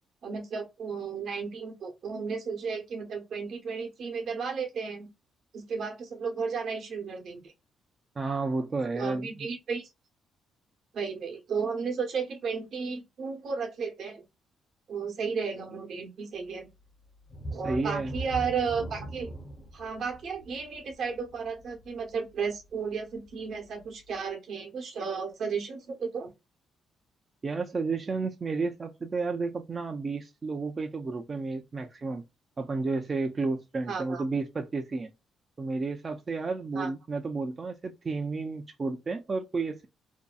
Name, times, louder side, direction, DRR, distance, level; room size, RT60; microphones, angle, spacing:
voice 1, 0.2-5.1 5.5-7.5 8.9-9.9 10.9-14.2 14.9-16.7 17.5-19.3 19.7-26.3 33.9-34.2 36.7-36.9, right 5 dB, 65° right, 0.9 m, -33 dB
voice 2, 8.2-9.5 17.6-18.1 27.4-32.2 32.6-35.1 35.6-39.9, right 3 dB, 35° right, 0.4 m, -32 dB
sound 1, 17.3-22.7 23.2-23.3 23.8-23.9, right 1 dB, 45° left, 0.8 m, -40 dB
2.6 x 2.2 x 2.3 m
cardioid pair, 90°, 0 cm